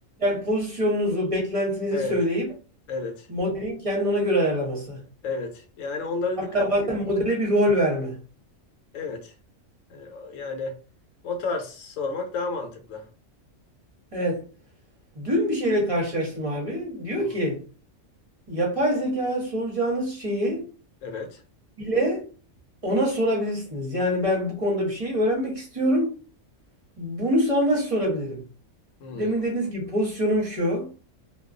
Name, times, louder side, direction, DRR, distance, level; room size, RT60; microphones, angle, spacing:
voice 1, 0.2-2.5 3.3-5.0 6.5-8.2 14.1-14.4 15.1-17.6 18.5-20.6 21.8-22.2 22.8-26.2 27.0-28.4 29.1-30.9, equal, 30° right, 0.7 m, -25 dB
voice 2, 2.9-3.3 5.2-7.0 8.9-9.3 9.9-10.8 11.2-13.1 17.2-17.3 21.0-21.4 29.0-29.3, left 3 dB, 80° left, 1.0 m, -32 dB
2.3 x 2.3 x 2.4 m
omnidirectional pair, 1.4 m